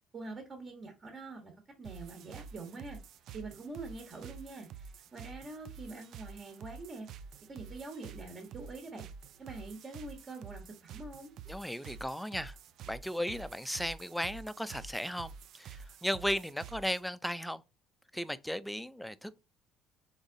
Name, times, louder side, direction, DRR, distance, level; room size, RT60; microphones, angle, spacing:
voice 1, 0.1-1.5 1.8-3.0 3.3-7.1 7.5-9.0 9.4-11.3, right 3 dB, 35° right, 1.3 m, -45 dB
sound 1, 1.8-17.1, right 6 dB, 65° right, 0.3 m, -49 dB
voice 2, 11.5-12.6 12.9-17.6 18.1-19.4, equal, 5° left, 0.4 m, -36 dB
4.0 x 3.5 x 3.8 m
supercardioid pair, 85°, 0 cm